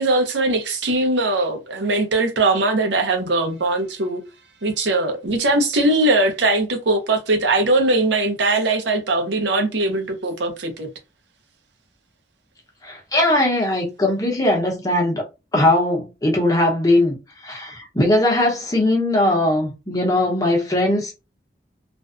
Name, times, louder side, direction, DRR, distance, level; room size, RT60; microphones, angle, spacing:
voice 1, 0.0-4.2 4.6-10.9, right 2 dB, 85° right, 0.7 m, -20 dB
voice 2, 12.8-15.2 15.5-17.2 17.4-21.1, left 1 dB, 20° left, 0.8 m, -19 dB
2.5 x 2.1 x 2.4 m
head